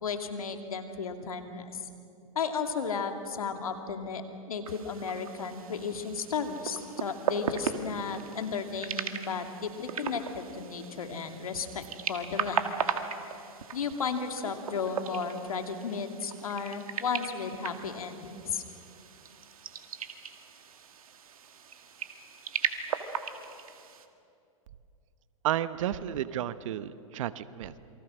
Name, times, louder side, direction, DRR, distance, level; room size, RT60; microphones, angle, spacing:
voice 1, 0.0-1.8 2.3-4.2 4.5-12.6 13.7-18.6, left 5 dB, 85° left, 6 dB, 2.5 m, -34 dB
sound 1, 4.7-24.1, right 7 dB, 80° right, 1.9 m, -37 dB
voice 2, 25.4-27.8, right 11 dB, 65° right, 14 dB, 1.1 m, -32 dB
28.0 x 24.0 x 6.3 m, 2.6 s
hypercardioid pair, 115°, 18 cm